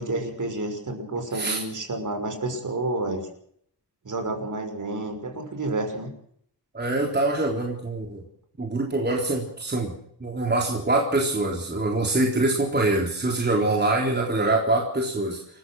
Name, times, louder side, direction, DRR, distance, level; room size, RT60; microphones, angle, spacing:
voice 1, 0.0-3.3 4.0-6.1, right 2 dB, 50° right, 6 dB, 6.0 m, -30 dB
voice 2, 6.7-8.2 8.6-9.9 10.2-15.4, right 2 dB, 25° right, 1 dB, 3.8 m, -24 dB
28.5 x 15.0 x 6.3 m, 0.67 s
wide cardioid pair, 135°, 40 cm